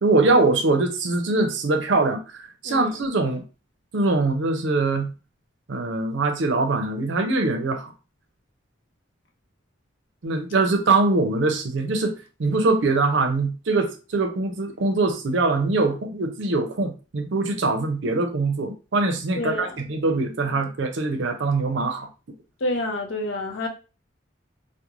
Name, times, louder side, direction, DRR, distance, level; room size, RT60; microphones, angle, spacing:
voice 1, 0.0-3.4 3.9-5.1 5.7-7.9 10.2-12.1 12.4-22.1, right 3 dB, 65° right, 5 dB, 0.5 m, -23 dB
voice 2, 19.4-19.8 22.6-23.7, left 2 dB, 75° left, 2 dB, 0.6 m, -28 dB
2.4 x 2.1 x 3.0 m, 0.32 s
head